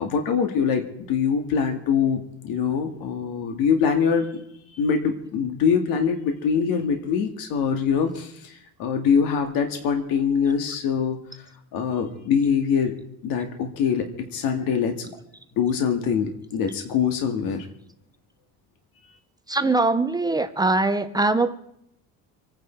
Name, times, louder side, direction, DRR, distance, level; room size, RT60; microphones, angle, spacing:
voice 1, 0.0-4.4 4.7-11.5 11.7-13.0 13.2-15.1 15.6-17.7, left 6 dB, 75° left, 5 dB, 2.1 m, -24 dB
voice 2, 19.5-21.6, right 3 dB, 10° right, 10 dB, 0.6 m, -22 dB
26.0 x 9.7 x 4.6 m, 0.74 s
cardioid pair, 160°, 35 cm